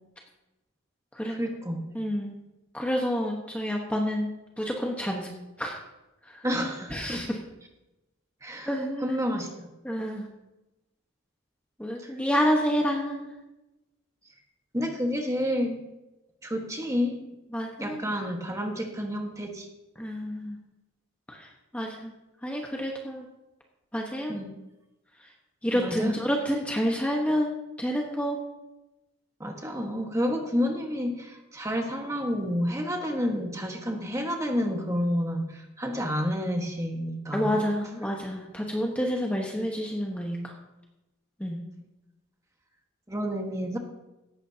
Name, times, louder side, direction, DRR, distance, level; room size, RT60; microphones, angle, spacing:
voice 1, 1.3-1.9 6.4-7.3 8.4-9.7 12.0-12.1 14.7-15.8 16.4-17.2 17.8-19.7 24.3-24.5 25.7-26.2 29.4-37.6 43.1-43.8, equal, 15° right, 2 dB, 1.5 m, -30 dB
voice 2, 1.9-2.3 2.7-4.3 4.6-5.3 5.6-5.8 6.3-6.4 6.9-7.4 8.7-9.2 9.8-10.3 11.8-13.3 17.5-18.1 20.0-20.6 21.3-22.1 22.4-23.3 23.9-24.3 25.6-28.4 37.3-40.5 41.4-41.6, equal, 5° left, -1 dB, 1.2 m, -29 dB
17.0 x 14.0 x 2.8 m, 1.0 s
head